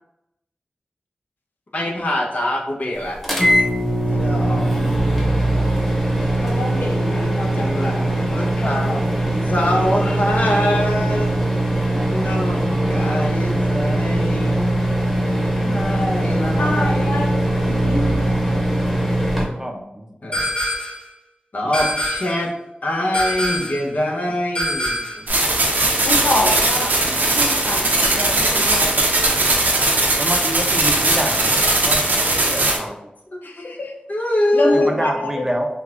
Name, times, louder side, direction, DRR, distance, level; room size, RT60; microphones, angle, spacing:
voice 1, 1.7-3.2 4.0-4.8 7.6-11.5 12.1-14.6 15.2-15.3 15.6-17.2 20.2-20.5 21.5-22.5 22.8-25.0 34.1-34.9, left 1 dB, 60° left, -1 dB, 0.8 m, -24 dB
sound 1, 3.2-19.4, right 1 dB, 5° left, 1.1 m, -20 dB
voice 2, 6.4-7.7 8.6-9.0 16.2-18.6 26.0-28.9 33.4-33.9 34.5-35.4, left 2 dB, 85° left, 1 dB, 0.5 m, -26 dB
voice 3, 19.4-20.0 30.2-33.0 34.7-35.7, right 1 dB, 15° right, 2 dB, 0.6 m, -27 dB
sound 2, 20.3-21.1 21.7-22.5 23.1-23.9 24.5-25.3, left 1 dB, 35° left, 1.2 m, -24 dB
sound 3, 25.3-32.8, right 2 dB, 75° right, 0.6 m, -18 dB
3.8 x 2.8 x 2.4 m, 0.89 s
cardioid pair, 50°, 3 cm